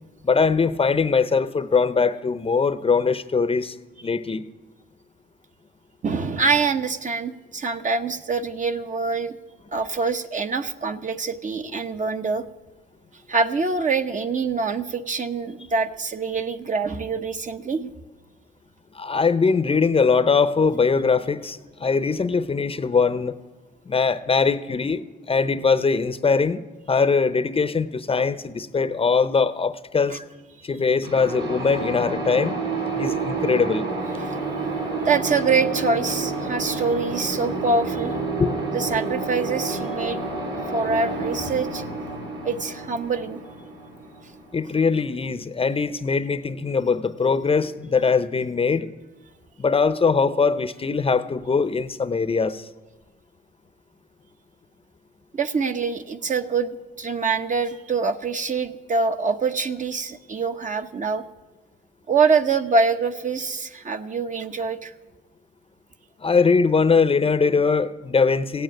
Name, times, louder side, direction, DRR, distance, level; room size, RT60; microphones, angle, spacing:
voice 1, 0.2-3.8 4.0-4.4 18.9-23.4 23.9-26.6 26.9-30.2 30.6-32.6 33.0-33.9 38.4-38.5 44.5-48.9 49.6-52.7 66.2-68.6, left 5 dB, 30° left, 13 dB, 0.7 m, -21 dB
voice 2, 6.0-9.3 9.7-12.4 13.3-18.0 30.1-30.2 30.6-30.7 34.2-34.4 35.0-38.1 38.7-40.3 40.7-41.8 42.4-43.4 55.3-61.2 62.1-64.9, right 4 dB, 40° right, 8 dB, 1.0 m, -25 dB
sound 1, 31.0-44.7, right 3 dB, 65° right, 5.4 m, -29 dB
16.0 x 9.0 x 9.2 m, 1.2 s
cardioid pair, 90°, 20 cm